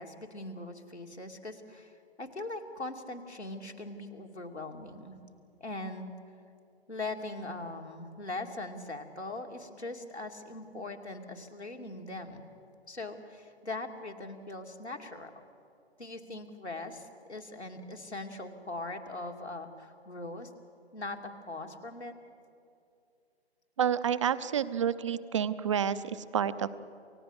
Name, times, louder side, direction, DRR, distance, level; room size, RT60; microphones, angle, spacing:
voice 1, 0.0-5.2 5.6-6.1 6.9-12.4 12.9-15.3 16.0-20.5 20.9-22.1, left 2 dB, 85° left, 2 dB, 2.6 m, -41 dB
voice 2, 23.8-26.8, right 8 dB, 30° right, 14 dB, 0.7 m, -29 dB
28.5 x 16.0 x 8.0 m, 2.5 s
figure-of-eight pair, 135°, 33 cm